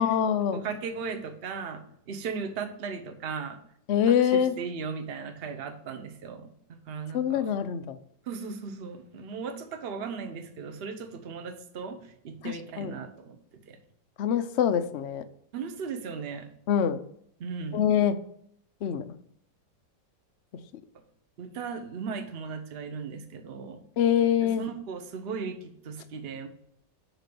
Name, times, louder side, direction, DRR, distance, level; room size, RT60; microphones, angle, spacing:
voice 1, 0.0-0.6 3.9-4.5 7.1-8.0 12.4-13.0 14.2-15.2 16.7-17.0 17.7-18.2 18.8-19.1 24.0-24.6, left 9 dB, 90° left, 9 dB, 0.6 m, -24 dB
voice 2, 0.5-3.6 4.1-7.5 8.3-13.4 13.7-13.8 15.5-16.5 17.4-17.8 21.4-23.8 24.6-26.5, right 5 dB, 45° right, 7 dB, 0.9 m, -37 dB
6.0 x 5.1 x 6.8 m, 0.69 s
omnidirectional pair, 1.9 m